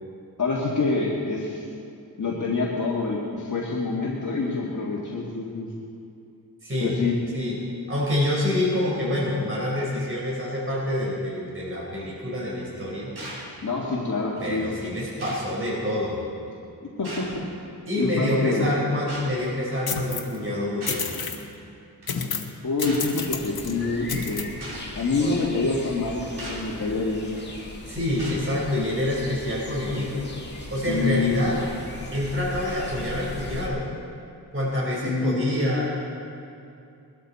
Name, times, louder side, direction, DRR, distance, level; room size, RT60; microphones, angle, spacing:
voice 1, 0.4-1.7 2.2-5.7 6.8-7.2 13.6-14.6 17.0-17.5 17.9-18.7 22.6-24.5 25.0-27.3 30.9-31.4 35.0-35.4, left 3 dB, 45° left, -4 dB, 1.9 m, -26 dB
voice 2, 6.6-7.0 7.3-7.6 7.9-13.1 14.4-16.2 17.9-21.1 25.2-25.3 27.9-30.3 30.7-31.6 32.1-33.9 34.5-36.0, left 1 dB, 30° right, -5 dB, 4.2 m, -27 dB
sound 1, 13.2-13.5 14.4-14.5 15.2-15.5 17.0-17.5 19.1-19.3 20.8-21.1 22.0-22.2 22.8-23.1 23.8-23.9 24.6-24.9 26.4-26.7 27.4-27.6 28.2-28.5, right 1 dB, 70° right, 3.6 m, -38 dB
sound 2, 19.9-20.4 20.9-21.4 22.1-22.5 22.8-23.7 24.1-24.4, left 6 dB, 65° left, 1.3 m, -30 dB
sound 3, 23.2-33.7, left 2 dB, 25° left, 2.2 m, -39 dB
21.0 x 13.0 x 4.2 m, 2.6 s
wide cardioid pair, 115°, 40 cm